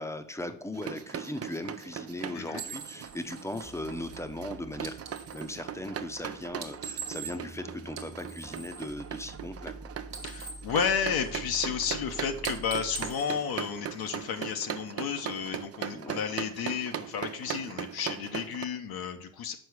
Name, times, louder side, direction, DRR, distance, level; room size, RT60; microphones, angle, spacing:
voice 1, 0.0-5.0 5.3-9.7 15.9-16.2, left 1 dB, 5° left, 8 dB, 0.7 m, -38 dB
sound 1, 0.7-18.7, right 9 dB, 40° right, 0.5 m, -39 dB
sound 2, 2.5-5.6 6.5-7.6 7.9-9.7 10.0-11.6 11.9-12.1 12.4-14.2, right 5 dB, 65° right, 1.3 m, -43 dB
sound 3, 3.6-13.2, right 1 dB, 15° right, 1.1 m, -48 dB
voice 2, 10.2-19.6, left 7 dB, 65° left, 5 dB, 0.8 m, -32 dB
6.3 x 4.6 x 4.7 m, 0.63 s
supercardioid pair, 70°, 40 cm